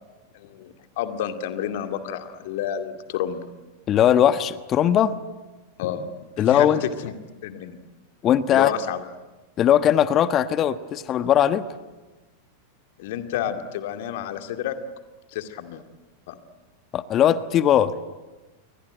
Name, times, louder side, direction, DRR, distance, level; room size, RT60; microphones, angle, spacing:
voice 1, 0.3-3.4 5.8-6.0 6.4-7.1 7.4-7.8 8.5-9.1 13.0-14.8 15.3-15.8 16.3-16.4, left 10 dB, 50° left, 7 dB, 2.3 m, -30 dB
voice 2, 3.9-5.2 6.4-6.8 8.2-8.7 9.6-11.6 16.9-17.9, left 10 dB, 30° left, 14 dB, 1.3 m, -19 dB
28.5 x 23.5 x 8.9 m, 1.2 s
figure-of-eight pair, 90°, 0 cm